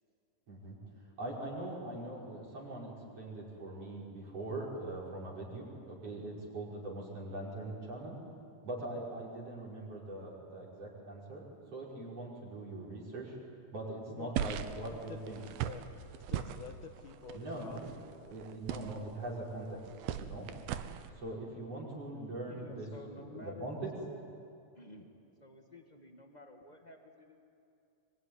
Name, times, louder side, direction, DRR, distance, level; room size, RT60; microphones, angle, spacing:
voice 1, 1.2-8.2 8.6-13.4 13.7-15.4 17.3-17.9 18.3-19.8 20.1-20.5 21.2-22.9 23.2-23.9, right 2 dB, 40° right, -3 dB, 6.3 m, -42 dB
voice 2, 14.1-14.7 15.1-15.8 16.1-18.1, left 6 dB, 65° left, 5 dB, 2.6 m, -49 dB
sound 1, 14.4-21.1, right 10 dB, 85° right, 2.9 m, -40 dB
voice 3, 22.5-23.7 23.9-24.2 24.7-25.1 25.4-27.4, left 1 dB, 20° left, 3 dB, 1.2 m, -51 dB
25.5 x 23.5 x 9.9 m, 2.6 s
omnidirectional pair, 4.2 m